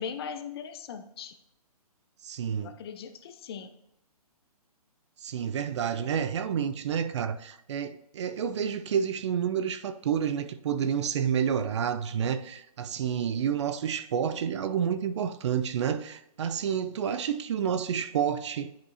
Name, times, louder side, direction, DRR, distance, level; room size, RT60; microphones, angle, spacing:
voice 1, 0.0-1.3 2.6-3.7 9.0-9.2 17.7-17.8, left 7 dB, 40° left, 0.6 m, -39 dB
voice 2, 2.2-2.8 5.2-18.7, right 8 dB, 45° right, 0.5 m, -29 dB
10.0 x 5.1 x 2.8 m
figure-of-eight pair, 135°, 20 cm